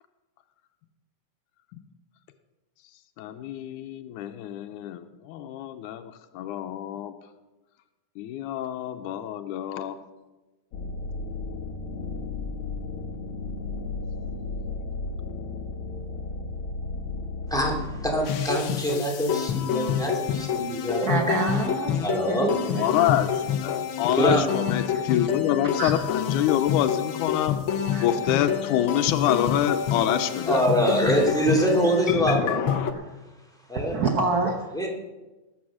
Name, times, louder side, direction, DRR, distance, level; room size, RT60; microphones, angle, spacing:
voice 1, 3.2-7.1 8.2-10.0 22.7-27.6 28.0-30.6, left 11 dB, 90° left, 8 dB, 2.2 m, -26 dB
sound 1, 10.7-18.2, left 3 dB, 55° left, 2.1 m, -34 dB
voice 2, 17.5-21.4 22.0-23.1 24.2-24.4 30.4-32.7 33.7-34.0 34.7-34.9, right 1 dB, ahead, 0 dB, 2.0 m, -25 dB
sound 2, 18.3-32.9, left 9 dB, 75° left, 1.1 m, -27 dB
voice 3, 21.0-21.9 22.3-22.9 25.8-25.9 27.9-28.1 32.9-33.0 33.7-34.5, right 3 dB, 85° right, 3 dB, 0.8 m, -26 dB
19.5 x 7.8 x 6.3 m, 1.1 s
omnidirectional pair, 3.5 m